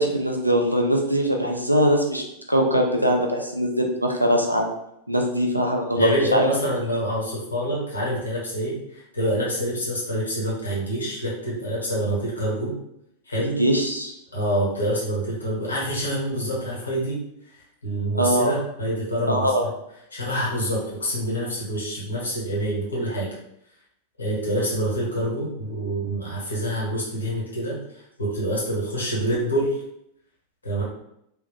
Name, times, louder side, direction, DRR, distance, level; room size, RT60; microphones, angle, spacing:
voice 1, 0.0-2.2 2.5-4.6 5.1-6.5 13.6-14.1 18.1-18.5 19.3-19.6, equal, 90° right, 2 dB, 0.5 m, -21 dB
voice 2, 6.0-12.7 13.2-13.6 14.3-17.2 17.8-19.7 20.1-23.3 24.2-27.8 28.2-29.8 30.6-30.8, equal, 75° left, -6 dB, 1.3 m, -26 dB
3.5 x 2.6 x 2.3 m, 0.78 s
figure-of-eight pair, 90°, 0 cm